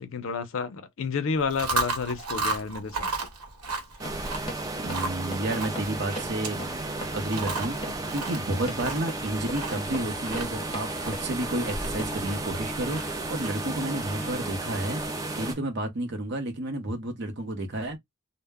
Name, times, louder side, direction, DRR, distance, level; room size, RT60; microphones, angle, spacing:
voice 1, 0.0-3.1, left 5 dB, 60° left, 0.5 m, -30 dB
Chewing mastication, 1.4-14.6, right 3 dB, 85° right, 1.0 m, -35 dB
Run, 3.7-12.2, left 1 dB, 20° left, 0.7 m, -41 dB
sound 1, 4.0-15.5, right 2 dB, 15° right, 0.4 m, -33 dB
voice 2, 4.8-6.8 7.1-18.0, right 1 dB, 50° right, 0.7 m, -31 dB
2.1 x 2.0 x 3.4 m
head